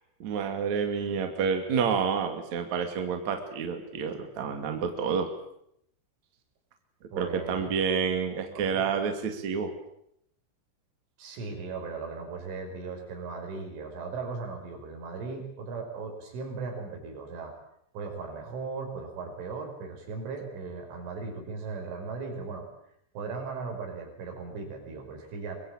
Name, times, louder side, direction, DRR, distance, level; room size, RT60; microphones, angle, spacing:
voice 1, 0.2-5.3 7.2-9.7, right 6 dB, 45° right, 5 dB, 3.2 m, -29 dB
voice 2, 7.1-7.8 8.5-8.9 11.2-17.5 17.9-22.6 23.1-25.6, right 4 dB, 80° right, 3 dB, 7.8 m, -37 dB
24.5 x 22.0 x 8.8 m, 0.74 s
omnidirectional pair, 5.6 m